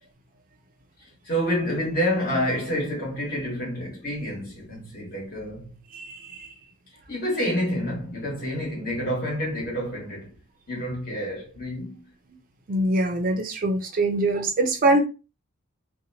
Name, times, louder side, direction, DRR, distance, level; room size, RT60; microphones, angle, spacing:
voice 1, 1.2-5.7 7.1-10.3 10.7-12.1, equal, 45° left, 1.4 m, -28 dB
voice 2, 5.9-6.5 12.7-15.0, right 2 dB, 40° right, 0.5 m, -23 dB
2.8 x 2.2 x 2.7 m
head